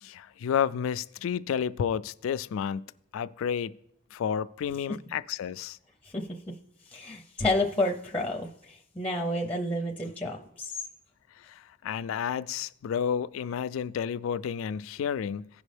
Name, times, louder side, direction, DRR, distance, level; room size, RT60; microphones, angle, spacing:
voice 1, 0.0-3.7 4.1-5.8 11.5-15.5, left 8 dB, 85° left, 0.3 m, -31 dB
voice 2, 6.9-10.8, left 1 dB, 5° left, 0.6 m, -30 dB
16.0 x 5.3 x 3.3 m
head